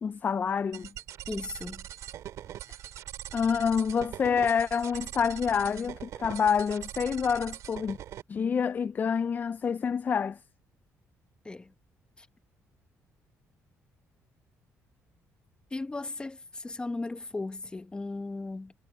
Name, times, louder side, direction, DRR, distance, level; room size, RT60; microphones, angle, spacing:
voice 1, 0.0-0.9 3.3-8.0 8.3-10.4, left 6 dB, 35° left, 0.3 m, -27 dB
sound 1, 0.7-8.2, right 12 dB, 75° right, 2.3 m, -42 dB
voice 2, 1.3-1.9 11.4-11.7 12.2-12.3 15.7-18.7, left 3 dB, 15° left, 1.0 m, -36 dB
cardioid pair, 105°, 5 cm